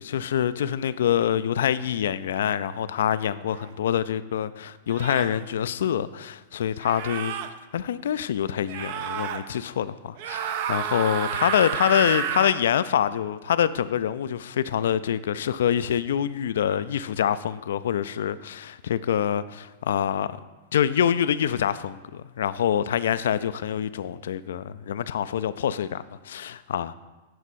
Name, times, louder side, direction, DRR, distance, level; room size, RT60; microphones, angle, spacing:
voice 1, 0.0-7.3 7.7-20.4 20.7-26.9, left 9 dB, 70° left, 0.3 m, -25 dB
sound 1, 3.5-3.7 4.9-5.4 6.8-7.5 8.7-9.4 10.2-12.6, right 8 dB, 55° right, 0.6 m, -30 dB
11.0 x 4.4 x 4.2 m
hypercardioid pair, 100°, 0 cm